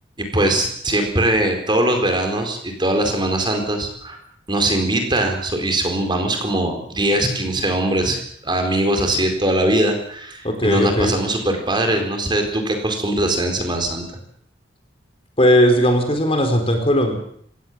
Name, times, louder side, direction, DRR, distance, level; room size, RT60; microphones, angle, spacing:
voice 1, 0.2-4.2 4.5-14.0, right 1 dB, 25° right, 5 dB, 4.3 m, -21 dB
voice 2, 10.4-11.2 15.4-17.2, equal, 30° left, 5 dB, 4.1 m, -17 dB
25.5 x 18.0 x 7.5 m, 0.66 s
head